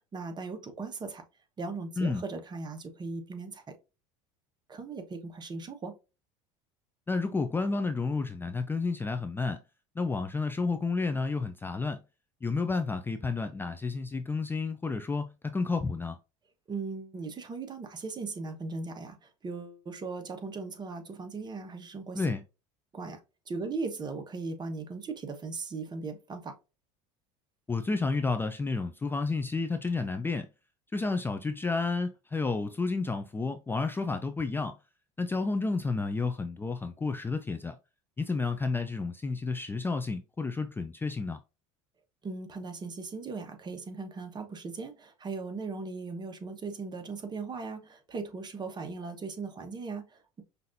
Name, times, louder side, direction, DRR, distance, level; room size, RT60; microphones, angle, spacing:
voice 1, 0.1-1.2 1.6-3.6 4.7-5.9 16.7-22.2 22.9-23.2 23.5-26.5 42.2-50.4, right 4 dB, 30° right, 1.1 m, -38 dB
voice 2, 7.1-9.6 10.0-12.0 12.4-16.2 22.1-22.4 27.7-30.5 30.9-34.8 35.2-37.8 38.2-41.4, left 3 dB, 15° left, 0.4 m, -31 dB
5.7 x 2.6 x 2.6 m
supercardioid pair, 90°, 15 cm